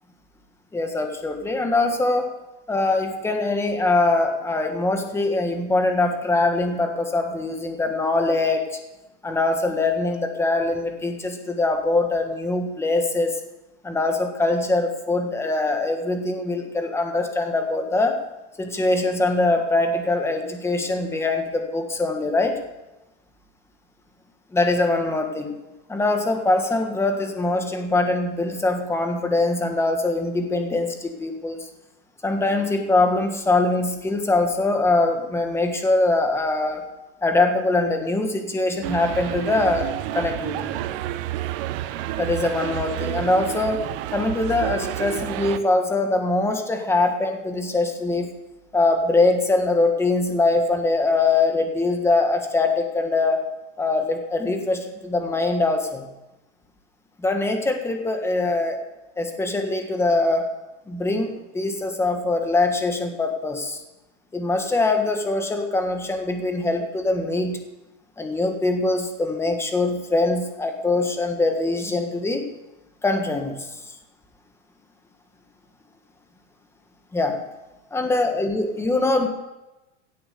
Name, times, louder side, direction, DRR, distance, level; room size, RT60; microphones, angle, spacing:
voice 1, 0.7-2.3 2.7-8.8 9.2-13.4 13.8-18.2 18.6-22.6 24.5-25.6 25.9-31.7 32.2-36.9 37.2-40.7 42.2-43.8 44.1-48.3 48.7-53.4 53.8-56.1 57.2-58.8 59.2-60.5 60.9-63.8 64.3-67.6 68.2-72.4 73.0-73.7 77.1-77.4 77.9-79.3, left 2 dB, 5° left, 5 dB, 1.5 m, -23 dB
sound 1, 38.8-45.6, right 13 dB, 50° right, 0.9 m, -29 dB
16.5 x 8.7 x 6.9 m, 1.0 s
supercardioid pair, 155°, 37 cm